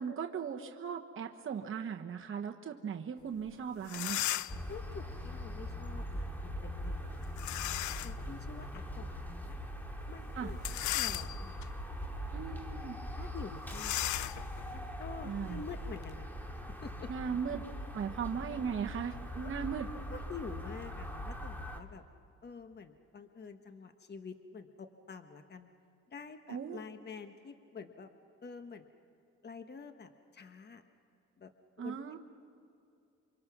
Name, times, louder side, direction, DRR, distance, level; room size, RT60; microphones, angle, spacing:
voice 1, 0.0-4.2 10.4-10.5 12.3-13.0 15.2-15.6 17.1-17.6 17.9-19.9 26.5-26.8 31.8-32.2, right 7 dB, 45° right, 2 dB, 1.2 m, -38 dB
sound 1, 3.5-3.6 3.8-4.7 7.4-8.2 8.8-8.9 10.5-11.6 12.2-12.4 12.7-12.8 13.7-16.1, left 15 dB, 70° left, 0.5 m, -37 dB
sound 2, 4.5-21.8, equal, 5° left, 2.3 m, -41 dB
voice 2, 4.7-7.4 7.9-9.6 10.1-10.6 10.9-11.6 13.1-14.1 14.7-16.3 16.5-17.1 19.4-19.5 20.1-22.0 22.4-25.7 26.1-28.1 28.4-28.9 29.4-30.8 31.4-31.5 31.8-32.2, left 5 dB, 35° left, 7 dB, 1.3 m, -48 dB
28.0 x 25.0 x 6.1 m, 2.6 s
cardioid pair, 90°, 30 cm